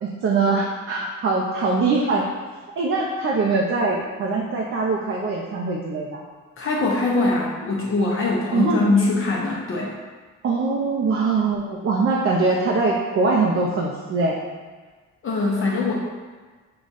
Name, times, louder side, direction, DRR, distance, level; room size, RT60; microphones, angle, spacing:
voice 1, 0.0-2.3 2.8-6.2 8.5-8.8 10.4-14.4, right 3 dB, 45° right, -2 dB, 0.6 m, -22 dB
voice 2, 6.6-9.9 15.2-15.9, left 3 dB, 45° left, -3 dB, 0.7 m, -22 dB
4.8 x 2.3 x 4.0 m, 1.4 s
cardioid pair, 90°, 30 cm